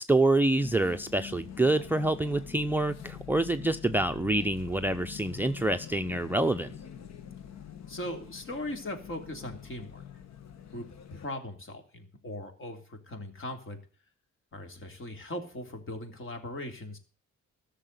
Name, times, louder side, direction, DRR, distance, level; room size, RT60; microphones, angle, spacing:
voice 1, 0.0-6.7, right 2 dB, 5° right, 12 dB, 0.6 m, -26 dB
sound 1, 0.6-11.3, left 8 dB, 60° left, 1.4 m, -45 dB
voice 2, 7.9-10.0 10.7-13.8 14.5-17.0, left 1 dB, 45° left, 6 dB, 3.3 m, -39 dB
13.5 x 6.8 x 8.1 m, 0.42 s
cardioid pair, 90°, 30 cm